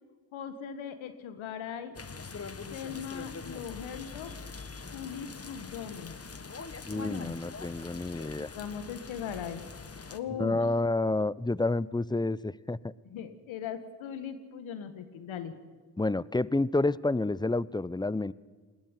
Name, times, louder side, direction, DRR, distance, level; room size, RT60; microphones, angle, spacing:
voice 1, 0.3-1.9 2.7-4.3 4.9-6.2 6.9-7.4 8.4-9.6 10.1-10.6 13.0-15.6, left 8 dB, 75° left, 9 dB, 1.6 m, -39 dB
sound 1, 1.9-10.2, left 4 dB, 30° left, 1.5 m, -43 dB
voice 2, 6.8-8.5 10.4-12.8 16.0-18.3, left 2 dB, 10° left, 20 dB, 0.6 m, -29 dB
20.5 x 16.0 x 9.7 m, 1.4 s
supercardioid pair, 45°, 47 cm